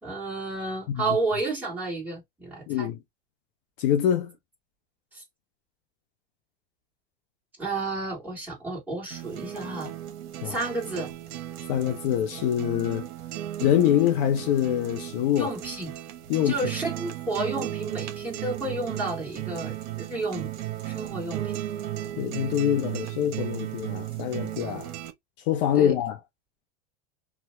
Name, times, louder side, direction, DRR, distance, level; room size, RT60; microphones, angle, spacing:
voice 1, 0.0-2.9 5.1-5.2 7.6-9.9 10.4-11.1 15.4-16.0 16.4-20.5 20.8-21.5 25.8-25.9, right 2 dB, 5° right, 1.5 m, -31 dB
voice 2, 2.7-3.0 3.8-4.3 10.4-10.6 11.7-13.1 13.6-15.5 16.3-16.6 22.2-24.9 25.5-26.2, left 10 dB, 50° left, 0.5 m, -24 dB
sound 1, 9.1-25.1, right 13 dB, 65° right, 0.8 m, -35 dB
2.8 x 2.2 x 3.1 m
supercardioid pair, 145°, 35 cm